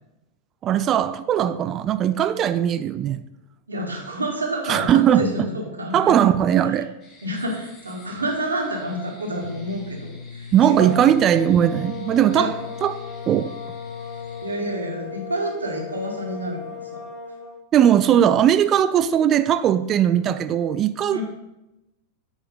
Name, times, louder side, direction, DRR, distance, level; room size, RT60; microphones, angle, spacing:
voice 1, 0.6-3.2 4.7-5.3 5.9-6.9 10.5-12.5 12.8-13.5 17.7-21.2, right 10 dB, 30° right, 0.3 m, -19 dB
voice 2, 3.7-6.4 7.2-11.0 12.3-12.5 14.4-17.0 18.1-18.2 21.1-21.2, right 1 dB, 75° right, 1.7 m, -29 dB
sound 1, 7.0-14.6, left 2 dB, 35° left, 2.2 m, -51 dB
sound 2, 9.4-14.4, left 5 dB, 70° left, 0.5 m, -39 dB
sound 3, 11.0-17.6, left 7 dB, 15° left, 1.8 m, -37 dB
7.7 x 4.9 x 5.2 m
figure-of-eight pair, 90°, 0 cm